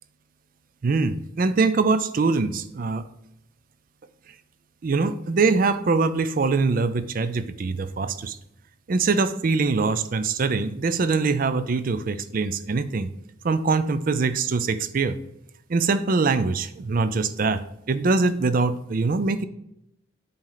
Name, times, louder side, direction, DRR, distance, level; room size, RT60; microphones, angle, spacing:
voice 1, 0.8-3.1 4.8-8.4 8.9-13.1 13.4-15.2 15.7-19.4, right 4 dB, 45° right, 12 dB, 0.4 m, -23 dB
7.6 x 4.3 x 3.9 m, 0.80 s
head